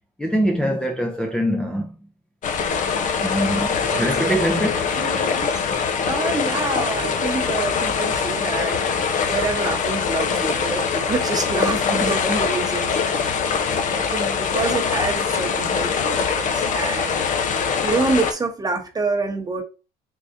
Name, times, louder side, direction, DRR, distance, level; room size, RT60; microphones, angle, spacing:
voice 1, 0.2-1.9 3.2-4.9, equal, 5° left, 0.6 m, -23 dB
sound 1, 2.4-18.3, left 6 dB, 50° left, 0.7 m, -23 dB
voice 2, 3.9-4.4 5.0-5.6 6.1-12.9 13.9-19.6, right 3 dB, 20° right, 0.9 m, -27 dB
3.8 x 3.1 x 2.5 m
cardioid pair, 110°, 17 cm